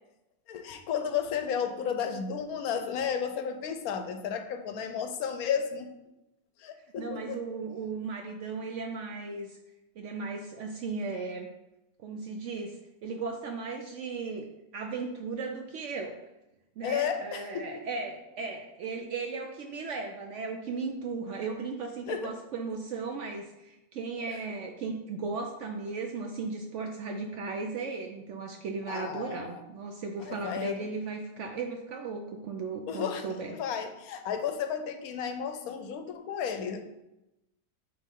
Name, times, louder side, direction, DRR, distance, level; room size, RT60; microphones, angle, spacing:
voice 1, 0.5-5.9 6.6-7.4 16.8-17.8 22.1-22.3 24.5-24.6 28.9-29.6 30.2-30.8 32.9-36.8, left 7 dB, 75° left, 8 dB, 1.0 m, -33 dB
voice 2, 7.0-9.5 10.0-11.5 12.0-16.2 16.8-33.5, right 4 dB, 70° right, 3 dB, 0.7 m, -36 dB
8.5 x 3.2 x 3.7 m, 0.94 s
omnidirectional pair, 1.7 m